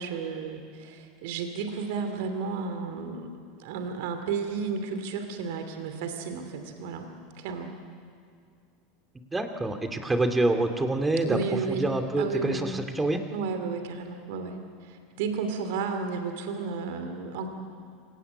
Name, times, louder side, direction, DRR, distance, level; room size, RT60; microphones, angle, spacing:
voice 1, 0.0-3.3 3.6-7.1 7.4-7.7 11.2-11.9 12.2-12.6 13.3-17.5, right 5 dB, 65° right, 7 dB, 2.6 m, -32 dB
voice 2, 9.3-11.4 11.7-13.2, right 2 dB, 15° right, 6 dB, 2.5 m, -26 dB
26.0 x 17.5 x 8.7 m, 2.2 s
hypercardioid pair, 85°, 0 cm